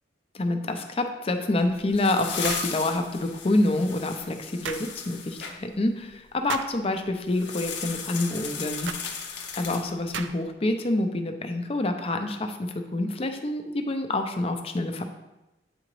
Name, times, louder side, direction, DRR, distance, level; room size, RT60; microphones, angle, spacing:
voice 1, 0.3-8.9 9.5-15.0, left 2 dB, 35° left, 6 dB, 0.5 m, -27 dB
sound 1, 1.6-5.5 7.3-10.2, left 6 dB, 80° left, 0.7 m, -36 dB
sound 2, 2.4-2.7 4.6-4.9 6.5-6.8 8.8-9.1 10.1-10.5, right 7 dB, 85° right, 0.4 m, -35 dB
8.5 x 3.8 x 3.1 m, 0.99 s
head